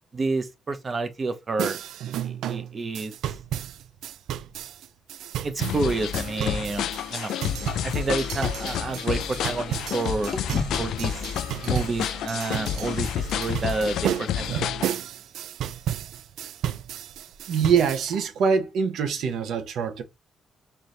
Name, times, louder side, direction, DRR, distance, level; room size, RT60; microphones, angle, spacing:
voice 1, 0.1-1.8 2.1-3.4 5.4-7.3 7.8-10.3 10.8-11.2 11.6-14.6, right 3 dB, 25° right, 0.7 m, -29 dB
sound 1, 1.6-18.1, right 10 dB, 85° right, 0.3 m, -33 dB
sound 2, 5.6-15.0, left 9 dB, 80° left, 0.3 m, -29 dB
sound 3, 9.0-9.9 10.3-14.6, left 2 dB, 25° left, 0.7 m, -39 dB
voice 2, 17.5-20.0, right 6 dB, 70° right, 0.8 m, -24 dB
4.4 x 2.7 x 3.2 m
cardioid pair, 170°, 0 cm